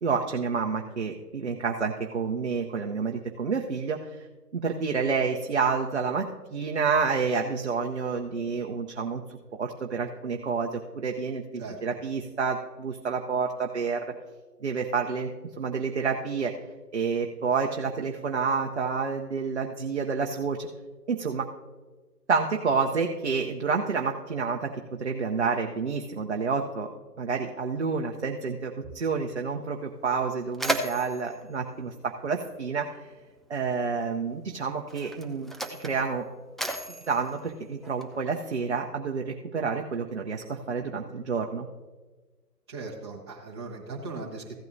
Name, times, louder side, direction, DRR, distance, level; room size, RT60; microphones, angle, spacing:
voice 1, 0.0-4.2 4.5-14.0 14.6-15.3 15.6-16.5 16.9-20.7 21.1-21.5 22.3-24.7 25.0-26.9 27.2-32.9 33.5-35.5 35.8-36.2 37.1-41.7, right 5 dB, 45° right, 1 dB, 0.7 m, -29 dB
Mechanisms, 29.6-29.7 30.1-32.8 33.8-34.0 34.8-38.4, right 1 dB, ahead, 0.3 m, -35 dB
voice 2, 42.7-44.5, right 3 dB, 15° right, -3 dB, 1.0 m, -38 dB
15.5 x 9.0 x 2.6 m, 1.3 s
figure-of-eight pair, 155°, 49 cm